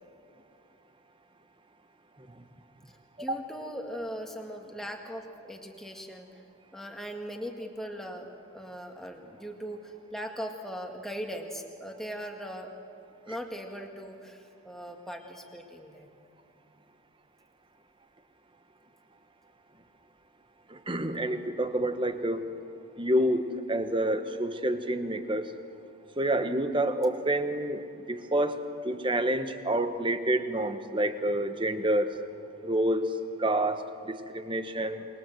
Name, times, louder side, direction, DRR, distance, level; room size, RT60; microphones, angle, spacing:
voice 1, 2.9-6.3 6.7-12.7 13.3-16.1, equal, ahead, 2 dB, 1.9 m, -39 dB
voice 2, 20.7-22.4 23.0-25.5 26.2-27.8 28.1-28.6 28.8-32.2 32.6-33.1 33.4-35.1, right 1 dB, 20° right, 9 dB, 1.1 m, -28 dB
27.5 x 21.5 x 7.7 m, 2.5 s
head